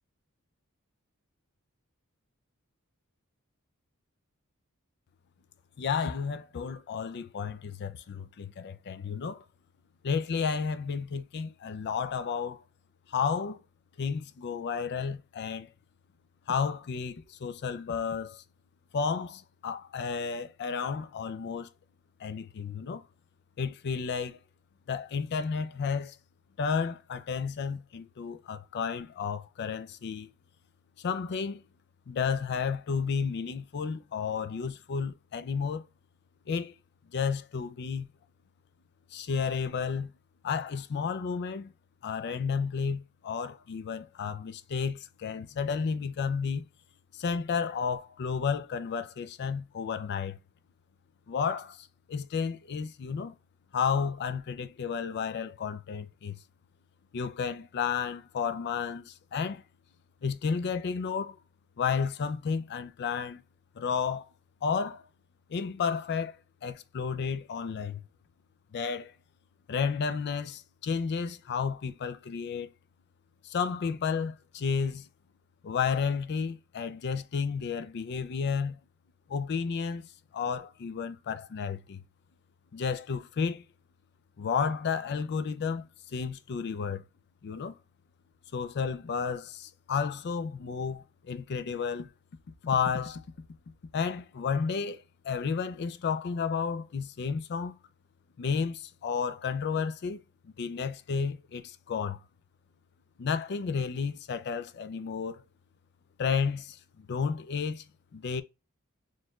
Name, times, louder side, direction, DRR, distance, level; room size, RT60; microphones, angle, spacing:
voice 1, 5.8-9.4 10.0-12.6 13.1-13.6 14.0-15.7 16.5-18.4 18.9-21.7 22.2-23.0 23.6-24.4 24.9-26.2 26.6-30.3 31.0-31.6 32.1-35.8 36.5-36.7 37.1-38.1 39.1-40.1 40.4-41.7 42.0-46.7 47.1-50.4 51.3-53.3 53.7-56.4 57.1-59.6 60.2-61.4 61.8-63.4 63.8-64.3 64.6-65.0 65.5-66.3 66.6-68.0 68.7-69.1 69.7-72.7 73.4-75.1 75.6-78.8 79.3-82.0 82.7-83.6 84.4-87.0 87.4-87.7 88.5-92.1 92.6-93.2 93.9-97.8 98.4-100.2 100.4-102.2 103.2-105.4 106.2-107.8 108.1-108.4, left 6 dB, 50° left, 0.4 m, -32 dB
4.3 x 3.1 x 2.3 m
head